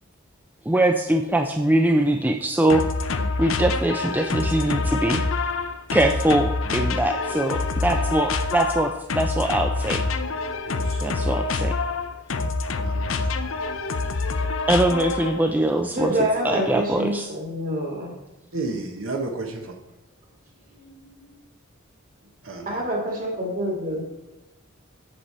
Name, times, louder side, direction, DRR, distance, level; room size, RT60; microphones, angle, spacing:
voice 1, 0.7-2.8 3.4-5.2 5.9-10.0 11.0-11.7 13.6-13.7 14.7-16.1 16.4-17.3, right 1 dB, 10° right, 5 dB, 0.4 m, -22 dB
sound 1, 2.7-15.5, left 3 dB, 65° left, 0.6 m, -26 dB
voice 2, 10.7-11.1 12.8-13.1 18.5-19.7 22.4-22.8, right 3 dB, 70° right, 3 dB, 1.0 m, -32 dB
voice 3, 15.9-18.2 20.7-21.4 22.7-24.0, right 1 dB, 40° right, -1 dB, 2.2 m, -27 dB
8.1 x 7.7 x 4.3 m, 0.94 s
head